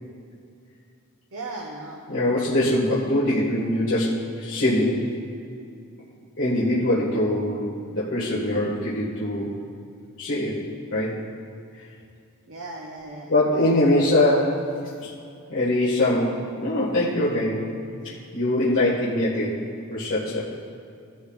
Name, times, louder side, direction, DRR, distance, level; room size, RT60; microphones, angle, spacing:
voice 1, 1.3-2.1 12.5-13.3, right 2 dB, 90° right, -2 dB, 1.2 m, -36 dB
voice 2, 2.1-5.1 6.4-9.5 10.2-10.6 10.9-11.2 11.8-11.9 13.3-14.6 15.0-15.1 15.5-17.8 18.0-19.6 19.9-20.4, left 1 dB, 60° left, -8 dB, 1.8 m, -23 dB
17.0 x 11.5 x 2.4 m, 2.5 s
head